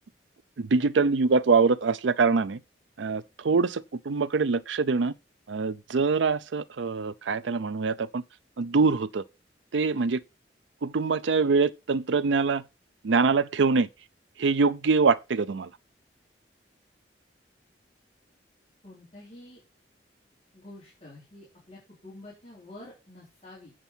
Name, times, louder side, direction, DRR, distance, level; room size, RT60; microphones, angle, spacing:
voice 1, 0.6-2.6 3.0-5.1 5.5-8.2 8.6-9.2 9.7-10.2 10.8-12.6 13.0-13.9 14.4-15.7, right 4 dB, 90° right, 0.5 m, -24 dB
voice 2, 18.8-19.6 20.5-23.7, left 1 dB, 35° left, 3.9 m, -48 dB
8.1 x 7.2 x 4.4 m
head